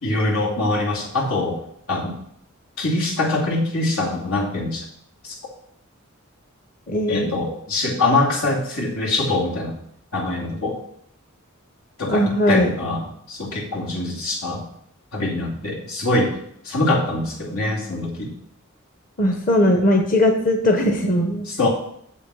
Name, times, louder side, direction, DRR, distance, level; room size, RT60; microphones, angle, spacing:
voice 1, 0.0-1.6 1.9-2.1 2.8-4.8 5.2-5.4 7.1-9.8 10.1-10.8 12.0-14.6 15.1-16.4 16.6-18.3 21.5-21.7, left 2 dB, 90° left, -3 dB, 2.7 m, -23 dB
voice 2, 6.9-7.3 12.1-12.7 19.2-21.4, left 1 dB, 40° left, 3 dB, 1.0 m, -19 dB
7.3 x 7.2 x 6.3 m, 0.70 s
head